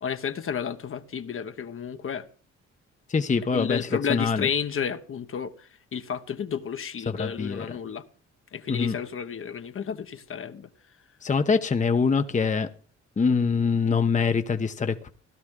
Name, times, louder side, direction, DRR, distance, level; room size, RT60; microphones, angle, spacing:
voice 1, 0.0-2.3 3.5-8.0 8.5-10.7, left 7 dB, 45° left, 1.0 m, -32 dB
voice 2, 3.1-4.5 7.1-7.7 8.7-9.0 11.2-12.7 13.2-15.1, left 5 dB, 25° left, 0.9 m, -24 dB
16.5 x 12.0 x 3.7 m
cardioid pair, 90°, 30 cm